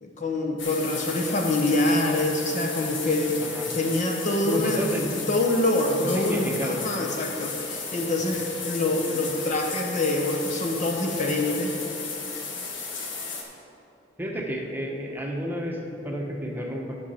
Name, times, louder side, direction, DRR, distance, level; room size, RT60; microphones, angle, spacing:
voice 1, 0.0-3.4 3.7-4.8 5.3-11.8, left 2 dB, 40° left, 1 dB, 0.9 m, -25 dB
sound 1, 0.6-13.4, left 4 dB, 85° left, 1.3 m, -34 dB
voice 2, 4.5-5.2 6.0-6.8 14.2-16.9, equal, 10° right, -1 dB, 1.1 m, -30 dB
11.0 x 6.4 x 5.6 m, 2.8 s
head